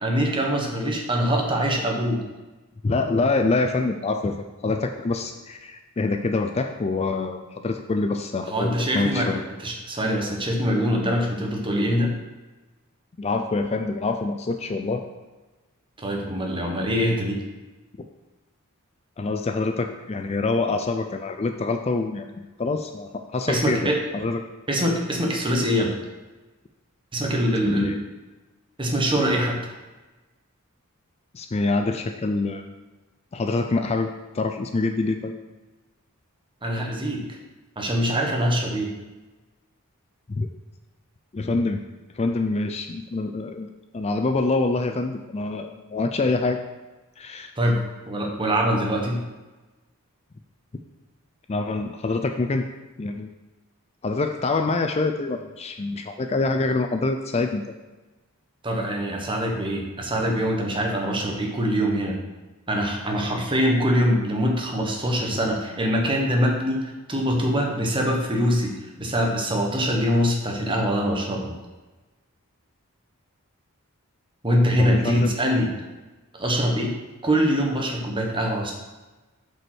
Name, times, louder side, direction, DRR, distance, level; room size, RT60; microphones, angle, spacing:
voice 1, 0.0-2.2 8.5-12.1 16.0-17.4 23.5-24.0 24.7-25.9 27.1-27.9 28.8-29.6 36.6-37.2 37.8-38.9 47.6-49.2 58.6-62.2 62.7-71.5 74.4-75.7 76.3-76.9 77.2-78.7, equal, 25° right, 0 dB, 1.4 m, -23 dB
voice 2, 2.8-9.4 13.2-15.0 19.2-24.4 27.6-28.0 31.3-32.6 33.3-35.3 40.3-40.5 41.3-41.8 42.1-43.7 43.9-46.6 47.2-47.5 51.5-52.7 53.0-53.3 54.0-57.6 74.8-75.3, left 3 dB, 30° left, 6 dB, 0.4 m, -25 dB
7.7 x 5.3 x 6.2 m, 1.2 s
head